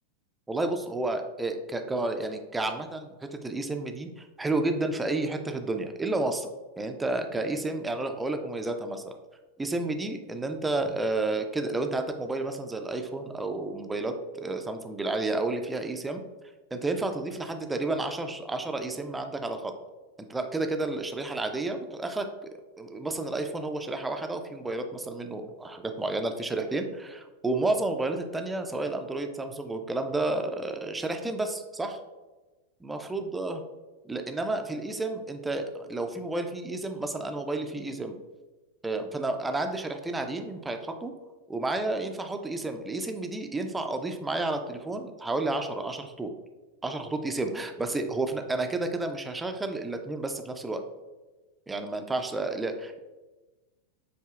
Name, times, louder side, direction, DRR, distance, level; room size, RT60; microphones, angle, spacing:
voice 1, 0.5-6.5 6.8-9.2 9.6-16.2 16.7-19.7 20.3-22.2 22.8-32.0 32.8-33.6 34.0-38.2 38.8-41.1 41.5-46.3 46.8-50.8 51.7-52.7, right 2 dB, 10° right, 5 dB, 0.4 m, -31 dB
7.4 x 2.7 x 2.3 m, 1.2 s
figure-of-eight pair, 90°, 0 cm